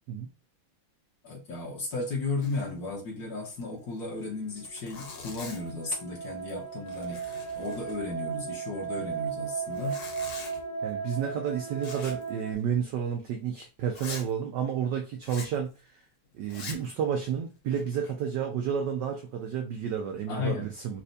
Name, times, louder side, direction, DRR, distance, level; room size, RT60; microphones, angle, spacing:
voice 1, 1.2-7.2 7.5-10.0 20.3-20.7, left 3 dB, 50° left, 1.6 m, -34 dB
Zipper (clothing), 2.4-2.8 3.0-3.1 3.5-3.6 4.2-4.3 4.6-5.8 6.3-6.6 6.9-8.3 9.6-10.6 11.8-12.3 12.6-12.7 13.2-13.3 13.9-14.3 15.2-15.6 16.4-16.9 17.5-18.1, left 4 dB, 85° left, 2.0 m, -43 dB
sound 1, 4.2-12.5, right 6 dB, 35° left, 0.8 m, -36 dB
voice 2, 10.8-16.0 16.3-21.0, right 8 dB, 80° right, 0.9 m, -31 dB
4.3 x 2.5 x 2.6 m
omnidirectional pair, 2.3 m